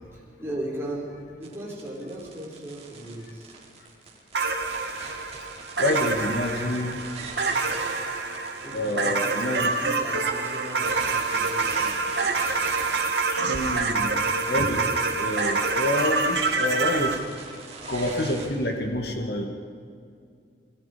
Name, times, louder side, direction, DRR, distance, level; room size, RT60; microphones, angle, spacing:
voice 1, 0.1-3.5 8.6-11.9, right 1 dB, 15° right, -5 dB, 6.3 m, -37 dB
sound 1, 1.4-18.5, right 4 dB, 35° right, 4.5 m, -42 dB
sound 2, 4.3-17.2, right 3 dB, 70° right, 2.1 m, -26 dB
voice 2, 5.8-7.0 8.7-9.7 13.1-14.8 15.2-17.2 17.5-19.5, left 1 dB, 60° left, 3 dB, 2.4 m, -28 dB
28.0 x 21.5 x 5.3 m, 2.3 s
head